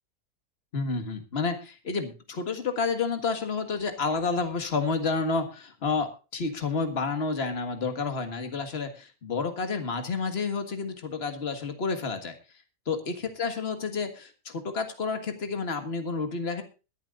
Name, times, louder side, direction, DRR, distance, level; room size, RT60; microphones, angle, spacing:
voice 1, 0.7-12.4 12.9-16.6, left 4 dB, 40° left, 8 dB, 1.9 m, -30 dB
22.0 x 10.5 x 2.5 m, 0.32 s
omnidirectional pair, 1.6 m